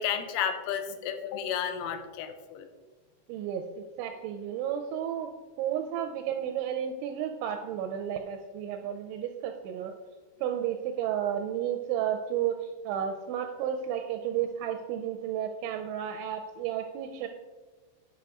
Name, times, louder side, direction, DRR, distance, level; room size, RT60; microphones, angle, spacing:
voice 1, 0.0-2.7, left 8 dB, 85° left, 8 dB, 3.1 m, -32 dB
voice 2, 3.3-5.3 5.6-9.9 10.4-17.3, right 9 dB, 85° right, 5 dB, 2.7 m, -32 dB
10.5 x 6.3 x 3.5 m, 1.3 s
omnidirectional pair, 5.7 m